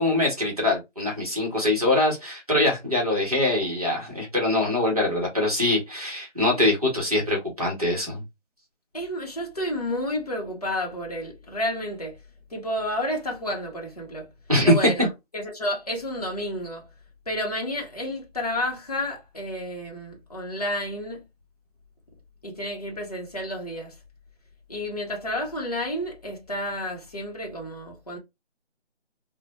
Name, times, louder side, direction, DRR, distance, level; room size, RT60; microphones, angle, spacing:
voice 1, 0.0-8.2 14.5-15.1, left 1 dB, 30° right, 0.9 m, -23 dB
voice 2, 8.9-12.2 12.5-14.3 14.6-15.1 15.3-16.9 17.3-21.2 22.4-24.0 24.7-28.2, left 1 dB, 35° left, 0.7 m, -30 dB
2.4 x 2.1 x 2.9 m
figure-of-eight pair, 175°, 35 cm